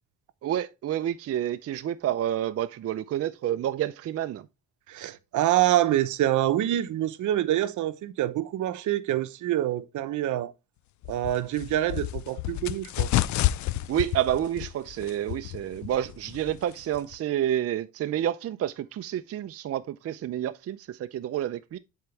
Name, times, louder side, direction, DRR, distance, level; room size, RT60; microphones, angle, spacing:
voice 1, 0.4-4.5 13.9-21.8, right 11 dB, 50° right, 0.5 m, -29 dB
voice 2, 4.9-10.5 11.1-13.1, right 13 dB, 75° right, 0.9 m, -26 dB
sound 1, 11.0-17.2, left 15 dB, 70° left, 0.5 m, -31 dB
10.5 x 4.6 x 3.3 m
cardioid pair, 90°, 30 cm